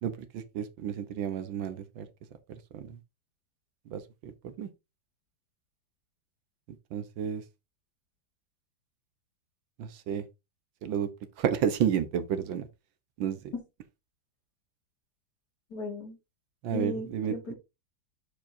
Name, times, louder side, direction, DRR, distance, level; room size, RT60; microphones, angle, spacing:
voice 1, 0.0-2.1 2.7-3.0 3.9-4.7 6.9-7.4 9.8-10.2 10.8-11.1 11.4-12.7 13.2-13.5 16.6-17.3, right 8 dB, 90° right, 1.7 m, -31 dB
voice 2, 15.7-16.2 16.7-17.5, left 3 dB, 55° left, 2.6 m, -36 dB
12.0 x 4.7 x 2.7 m
omnidirectional pair, 2.0 m